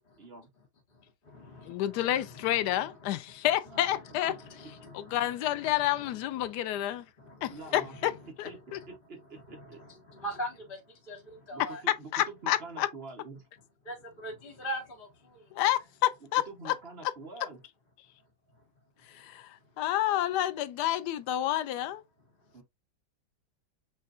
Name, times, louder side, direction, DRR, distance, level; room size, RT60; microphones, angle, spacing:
voice 1, 0.2-0.5 3.7-4.3 7.5-8.0 8.4-8.6 8.9-9.8 11.5-13.5 16.5-17.6 22.5-22.6, right 3 dB, 40° right, 1.0 m, -46 dB
voice 2, 0.9-3.4 3.9-4.0 4.3-8.2 8.7-9.0 9.5-11.8 13.8-15.6 18.5-18.6 19.1-19.7 22.4-22.5, equal, 30° left, 1.4 m, -44 dB
voice 3, 1.7-4.3 4.9-7.0 7.4-8.1 8.4-8.8 12.1-12.9 15.5-16.7 19.1-22.0, left 13 dB, 70° left, 1.1 m, -29 dB
7.5 x 2.5 x 2.5 m
omnidirectional pair, 2.1 m